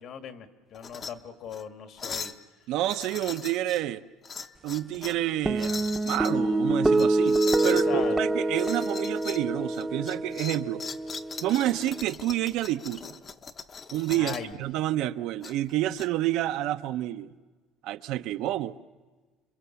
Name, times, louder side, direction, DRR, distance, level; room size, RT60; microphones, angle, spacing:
voice 1, 0.0-2.3 7.6-8.2 14.1-14.6, left 8 dB, 50° left, 7 dB, 1.6 m, -38 dB
sound 1, 0.7-1.1 1.5-1.6 2.0-2.4 2.8-3.8 4.2-5.2 5.5-6.3 6.9-7.9 8.5-9.4 9.7-14.5 15.4-16.1, left 5 dB, 25° left, 0.9 m, -39 dB
voice 2, 2.7-4.0 4.6-10.8 11.4-13.2 13.9-17.3 17.8-18.8, right 14 dB, 60° right, 10 dB, 0.7 m, -29 dB
sound 2, 5.5-12.0, right 2 dB, 5° right, 0.8 m, -26 dB
28.0 x 22.0 x 7.1 m, 1.3 s
cardioid pair, 160°, 0 cm